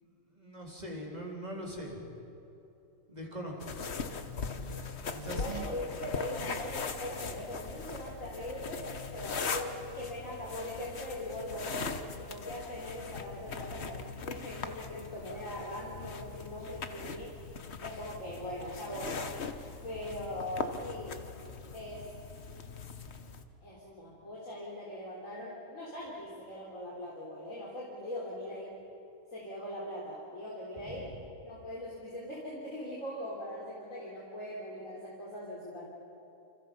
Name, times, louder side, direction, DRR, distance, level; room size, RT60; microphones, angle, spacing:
voice 1, 0.0-2.2 3.1-3.7 5.1-5.7 30.7-31.3, right 1 dB, 30° right, -1 dB, 4.1 m, -42 dB
sound 1, 3.6-23.4, left 5 dB, 55° left, 1.4 m, -40 dB
voice 2, 5.2-8.8 9.1-17.3 17.8-19.2 19.8-21.2 21.7-22.0 23.6-28.8 29.3-31.1 31.4-35.8, left 1 dB, 80° left, -5 dB, 4.1 m, -41 dB
29.0 x 27.0 x 5.5 m, 3.0 s
omnidirectional pair, 1.4 m